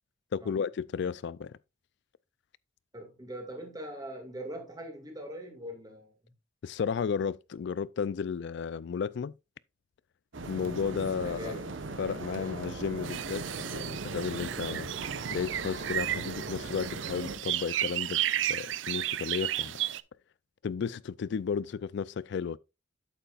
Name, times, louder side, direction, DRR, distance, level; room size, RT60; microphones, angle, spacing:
voice 1, 0.3-1.6 6.6-9.3 10.5-11.5 12.0-14.9 15.3-18.2 18.5-19.7 20.6-22.6, left 6 dB, 65° left, 0.3 m, -33 dB
voice 2, 2.9-6.3 11.2-11.7 12.3-12.7, right 1 dB, 20° right, 2.0 m, -42 dB
sound 1, 10.3-17.4, right 3 dB, 90° right, 1.0 m, -39 dB
sound 2, 13.0-20.0, right 12 dB, 75° right, 0.4 m, -33 dB
8.2 x 8.1 x 2.4 m
head